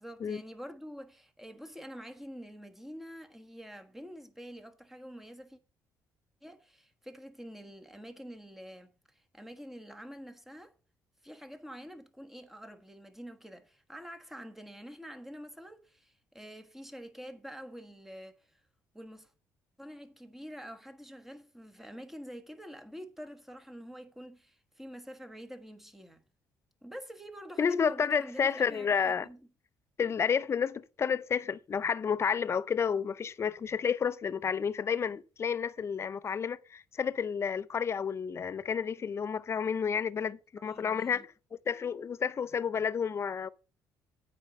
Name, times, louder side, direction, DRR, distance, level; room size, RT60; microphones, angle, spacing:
voice 1, 0.0-5.6 6.4-10.7 11.2-18.6 18.9-19.3 19.8-26.2 26.8-29.5 40.6-41.2, equal, 5° right, 1.4 m, -47 dB
voice 2, 27.6-29.3 30.0-41.3 41.7-43.5, left 6 dB, 35° left, 0.5 m, -30 dB
8.8 x 5.1 x 6.5 m
cardioid pair, 95°, 7 cm